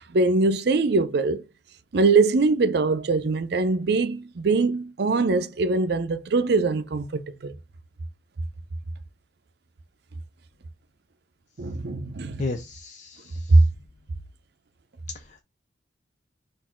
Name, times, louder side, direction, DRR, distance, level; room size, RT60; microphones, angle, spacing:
voice 1, 0.0-1.4 1.9-7.5 11.6-12.4 13.5-13.6, right 3 dB, 65° right, 0.5 m, -22 dB
voice 2, 12.4-13.6 15.1-15.4, left 3 dB, 45° left, 0.5 m, -34 dB
4.2 x 2.6 x 4.2 m
head